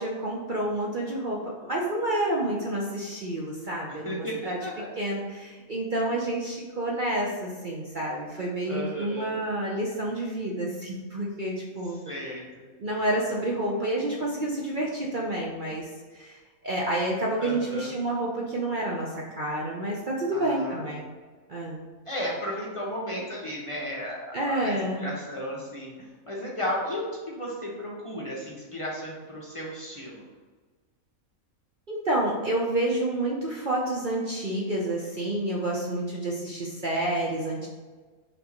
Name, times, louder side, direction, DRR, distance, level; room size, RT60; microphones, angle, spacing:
voice 1, 0.0-4.6 5.0-12.1 12.8-21.1 21.5-21.8 24.3-25.1 31.9-37.7, right 1 dB, 45° right, -3 dB, 0.8 m, -29 dB
voice 2, 3.9-4.9 8.6-9.4 12.1-12.6 17.4-17.9 20.3-20.8 22.1-25.9 26.3-30.2, equal, 25° left, -4 dB, 1.0 m, -34 dB
5.6 x 3.6 x 5.1 m, 1.4 s
omnidirectional pair, 1.4 m